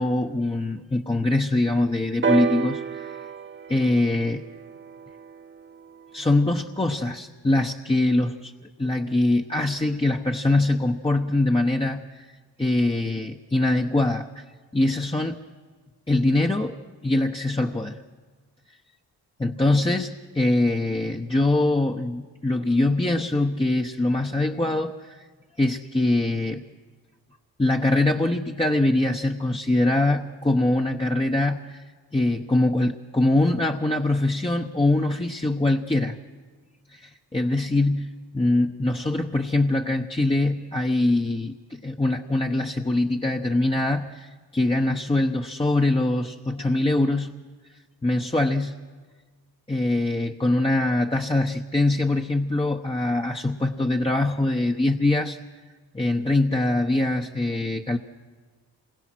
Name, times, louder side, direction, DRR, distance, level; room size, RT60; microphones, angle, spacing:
voice 1, 0.0-3.2 3.7-4.4 6.1-8.5 8.8-12.3 12.6-14.4 14.7-15.4 16.1-16.7 17.0-18.0 19.4-25.2 25.6-26.6 27.6-31.8 32.1-36.2 36.9-47.3 48.0-48.8 49.7-55.4 55.9-58.0, left 2 dB, 15° left, 1 dB, 0.9 m, -23 dB
sound 1, 2.2-6.1 7.0-7.1, right 6 dB, 30° right, 0.9 m, -30 dB
27.0 x 21.5 x 6.1 m, 1.4 s
cardioid pair, 70°, 40 cm